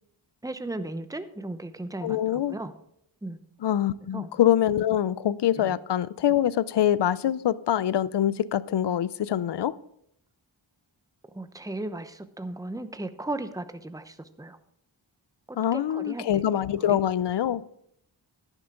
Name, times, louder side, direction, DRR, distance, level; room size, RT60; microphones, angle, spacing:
voice 1, 0.4-2.7 3.2-3.4 4.1-4.3 5.6-5.8 11.3-14.6 15.5-16.4 16.8-17.0, right 2 dB, 5° right, 0.8 m, -36 dB
voice 2, 2.0-2.6 3.6-9.7 15.5-17.6, left 11 dB, 60° left, 0.5 m, -24 dB
11.5 x 9.9 x 3.8 m
wide cardioid pair, 50°, 47 cm